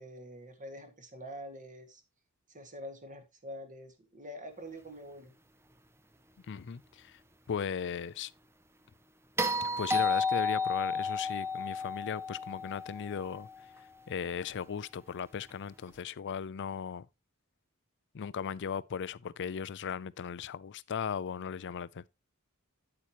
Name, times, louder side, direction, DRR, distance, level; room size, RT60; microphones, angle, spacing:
voice 1, 0.0-2.0 2.5-5.3, equal, 35° right, 1.9 m, -46 dB
voice 2, 6.5-7.2 7.5-8.3 9.6-13.5 14.1-17.1 18.1-22.1, left 7 dB, 55° left, 0.4 m, -37 dB
sound 1, 9.4-13.6 15.9-16.0, left 3 dB, 10° right, 0.7 m, -32 dB
8.8 x 8.4 x 2.9 m
head